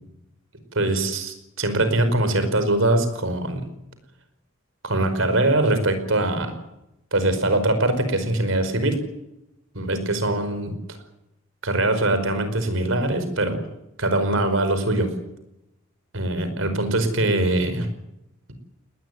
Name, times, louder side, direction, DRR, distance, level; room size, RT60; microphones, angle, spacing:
voice 1, 0.7-3.7 4.8-6.6 7.1-9.0 9.7-10.7 11.6-13.6 14.0-15.1 16.1-17.9, right 2 dB, 70° right, 9 dB, 5.0 m, -22 dB
19.5 x 19.5 x 9.5 m, 0.86 s
head